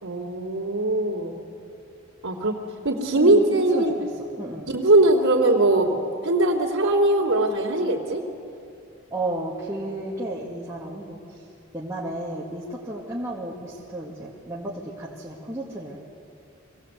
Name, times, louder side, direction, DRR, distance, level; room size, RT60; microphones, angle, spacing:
voice 1, 0.0-1.3 2.2-2.6 2.8-3.9 4.7-6.0 6.2-8.2, right 2 dB, 85° right, -5 dB, 2.8 m, -20 dB
voice 2, 3.2-4.1 4.4-4.7 9.1-11.4 11.7-16.0, right 1 dB, 15° right, -6 dB, 2.0 m, -33 dB
23.5 x 18.0 x 8.1 m, 2.6 s
head